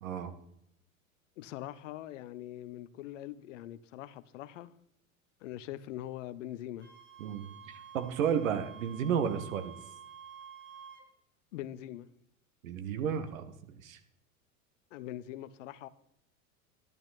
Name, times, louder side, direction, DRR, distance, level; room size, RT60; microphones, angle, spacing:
voice 1, 0.0-0.3 7.2-7.5 7.9-9.8 12.6-13.5 13.8-14.0, right 8 dB, 65° right, 1.6 m, -32 dB
voice 2, 1.4-4.7 5.4-6.9 11.5-12.1 14.9-15.9, left 13 dB, 60° left, 0.8 m, -42 dB
Wind instrument woodwind instrument, 6.8-11.1, right 8 dB, 25° right, 2.5 m, -50 dB
12.0 x 11.0 x 4.1 m
figure-of-eight pair, 85°, 43 cm